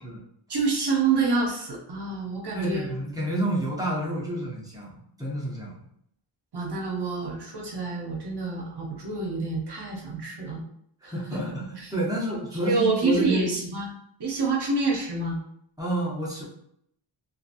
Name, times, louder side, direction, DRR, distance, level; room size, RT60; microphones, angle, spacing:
voice 1, 0.5-2.9 6.5-10.6 11.0-11.4 11.8-11.9 12.6-13.9 14.2-15.4, right 4 dB, 55° right, -1 dB, 0.9 m, -27 dB
voice 2, 2.5-5.9 11.0-13.5 15.8-16.5, right 1 dB, 5° right, -4 dB, 0.8 m, -29 dB
2.9 x 2.4 x 2.5 m, 0.69 s
wide cardioid pair, 120°, 49 cm